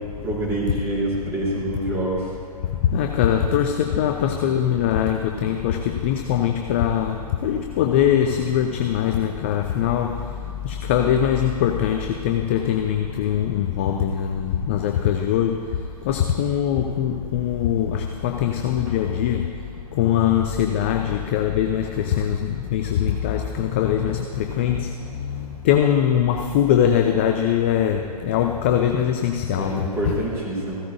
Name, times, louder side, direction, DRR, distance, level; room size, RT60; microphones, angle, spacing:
voice 1, 0.2-2.2 29.5-30.8, right 1 dB, 15° right, -6 dB, 3.5 m, -26 dB
voice 2, 2.7-19.5 19.9-30.2, left 9 dB, 20° left, 5 dB, 0.3 m, -22 dB
15.5 x 13.0 x 2.7 m, 2.3 s
figure-of-eight pair, 130°, 20 cm